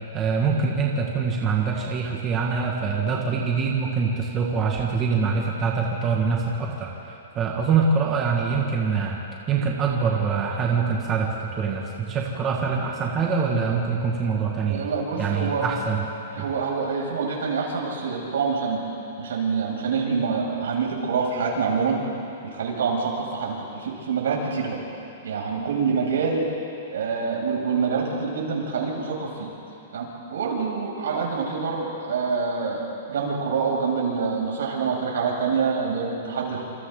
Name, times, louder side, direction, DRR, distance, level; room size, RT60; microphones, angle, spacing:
voice 1, 0.1-6.9 7.4-9.2 9.5-11.3 11.6-14.8 15.2-16.0 16.4-16.5, right 5 dB, 20° right, -2 dB, 2.0 m, -24 dB
voice 2, 14.7-15.7 16.3-18.8 19.2-22.0 22.5-24.8 25.2-26.4 26.9-29.5 29.9-36.7, right 5 dB, 85° right, -3 dB, 7.3 m, -26 dB
28.5 x 27.0 x 4.0 m, 2.8 s
hypercardioid pair, 170°, 0 cm